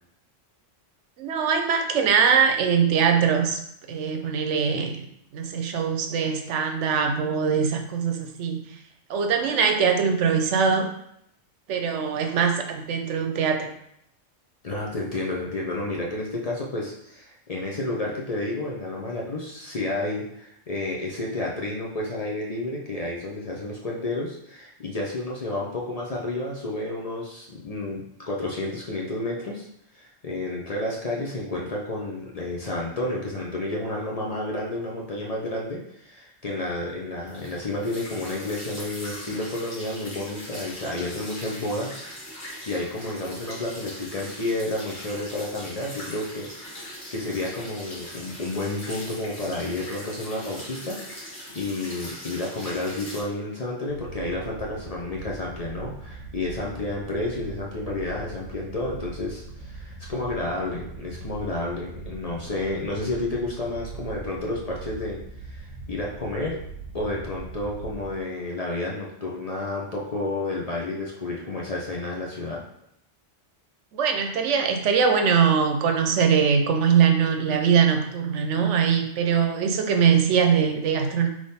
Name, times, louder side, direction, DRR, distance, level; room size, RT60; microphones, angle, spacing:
voice 1, 1.2-3.6 3.9-5.0 5.3-8.6 9.1-10.9 11.7-13.7 73.9-81.3, right 6 dB, 80° right, 5 dB, 0.9 m, -22 dB
voice 2, 14.6-29.7 29.9-42.0 42.3-51.0 51.5-66.6 66.9-72.6, left 2 dB, 40° left, -3 dB, 0.6 m, -31 dB
sound 1, 37.3-53.2, equal, 60° left, 1.7 m, -40 dB
sound 2, 53.9-68.2, right 4 dB, 65° right, 1.2 m, -41 dB
3.5 x 3.1 x 4.1 m, 0.74 s
omnidirectional pair, 1.2 m